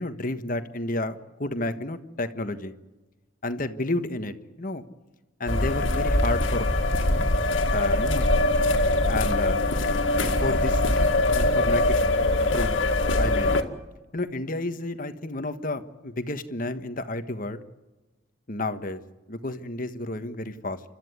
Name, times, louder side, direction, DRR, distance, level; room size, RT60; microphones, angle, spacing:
voice 1, 0.0-2.8 3.4-4.8 5.4-6.7 7.7-8.3 9.1-9.7 10.4-10.8 11.3-11.9 12.5-12.8 13.2-13.6 14.1-17.6 18.5-19.0 19.3-20.8, left 2 dB, 45° left, 9 dB, 1.4 m, -31 dB
sound 1, 5.5-13.6, left 2 dB, 75° left, 2.1 m, -22 dB
30.0 x 13.5 x 9.6 m, 1.1 s
head